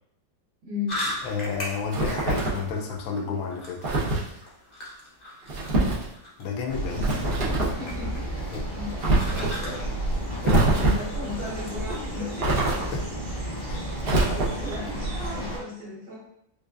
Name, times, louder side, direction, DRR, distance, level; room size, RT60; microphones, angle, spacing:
voice 1, 0.6-1.0 7.2-10.0 10.8-12.5 14.6-16.2, left 3 dB, 65° right, -8 dB, 2.0 m, -36 dB
sound 1, 0.9-13.1, left 1 dB, 60° left, 0.4 m, -40 dB
voice 2, 1.2-3.9 6.4-7.3 8.5-8.7 10.4-10.7 12.9-13.2 13.6-13.8, left 5 dB, 85° left, 2 dB, 1.3 m, -31 dB
sound 2, 1.9-2.7 3.8-4.3 5.5-6.1 6.9-7.8 9.0-9.6 10.4-11.2 12.4-13.1 14.0-14.7, right 2 dB, 80° right, 0.5 m, -24 dB
sound 3, 6.7-15.6, right 1 dB, 40° right, 0.8 m, -32 dB
4.9 x 2.3 x 2.4 m, 0.77 s
omnidirectional pair, 2.1 m